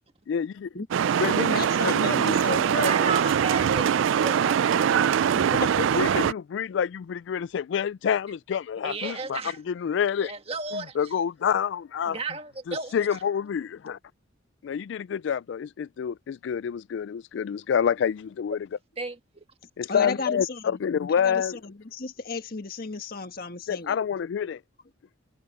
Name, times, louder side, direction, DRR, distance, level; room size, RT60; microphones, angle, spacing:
voice 1, 0.3-0.7 1.2-1.9 5.9-9.4 9.7-10.3 10.7-12.2 12.7-14.0 14.6-18.7 19.8-21.6 23.7-24.6, left 7 dB, 65° left, 0.3 m, -28 dB
sound 1, 0.9-6.3, right 8 dB, 75° right, 0.3 m, -23 dB
voice 2, 1.3-3.2 5.3-5.9 19.9-20.8 21.2-24.0, left 3 dB, 50° left, 1.5 m, -33 dB
voice 3, 2.8-4.9 8.8-9.6 10.2-11.1 12.1-13.1 19.0-19.4, right 4 dB, 30° right, 1.6 m, -34 dB
head